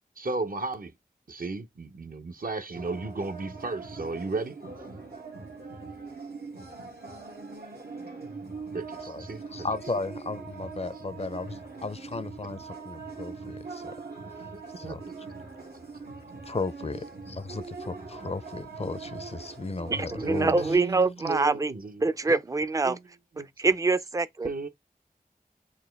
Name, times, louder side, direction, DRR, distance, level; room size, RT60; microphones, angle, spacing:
voice 1, 0.2-0.9 1.3-4.6 8.7-9.7 14.5-15.0 20.2-22.4 22.8-23.0 23.4-23.5 24.4-24.7, right 3 dB, 65° right, 0.6 m, -34 dB
sound 1, 2.7-20.8, right 4 dB, 90° right, 0.9 m, -42 dB
voice 2, 9.1-14.0 14.8-15.0 16.4-20.7, left 3 dB, 40° left, 0.4 m, -35 dB
voice 3, 19.9-21.7 22.0-23.0 23.6-24.5, right 3 dB, 20° right, 0.3 m, -25 dB
4.0 x 2.2 x 3.3 m
wide cardioid pair, 55°, 16 cm